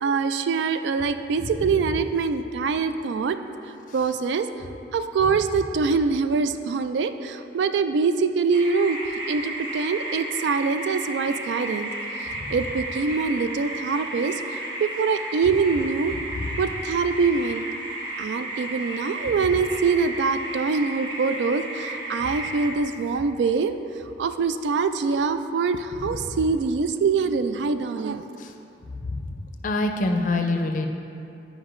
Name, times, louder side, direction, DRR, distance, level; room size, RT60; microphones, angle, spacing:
voice 1, 0.0-3.4 3.9-4.5 4.9-9.0 9.3-11.9 12.2-14.4 14.8-16.1 16.6-17.7 18.2-23.7 24.2-28.2, right 5 dB, 80° right, 10 dB, 0.3 m, -24 dB
sound 1, 8.5-22.7, right 1 dB, 50° right, 1.4 m, -33 dB
voice 2, 29.6-30.9, left 2 dB, 45° left, 4 dB, 0.5 m, -24 dB
9.8 x 5.1 x 2.5 m, 2.7 s
head